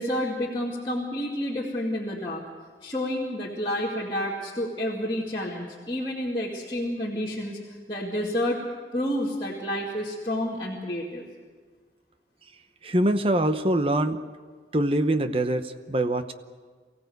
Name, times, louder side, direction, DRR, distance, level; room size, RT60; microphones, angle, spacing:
voice 1, 0.0-2.4 2.8-8.6 8.9-11.2, left 1 dB, 25° left, -6 dB, 2.3 m, -29 dB
voice 2, 12.8-14.2 14.7-16.3, right 1 dB, 30° right, 9 dB, 0.9 m, -24 dB
24.0 x 16.0 x 8.1 m, 1.5 s
head